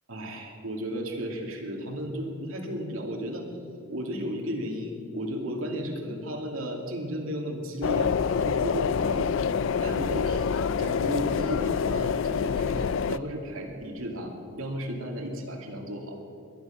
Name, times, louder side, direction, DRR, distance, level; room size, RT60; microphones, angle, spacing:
voice 1, 0.1-3.5 3.9-8.1 8.4-9.2 9.8-16.2, equal, 85° right, 1 dB, 2.5 m, -34 dB
sound 1, 7.8-13.2, left 6 dB, 65° left, 0.4 m, -26 dB
22.0 x 11.0 x 5.8 m, 2.5 s
head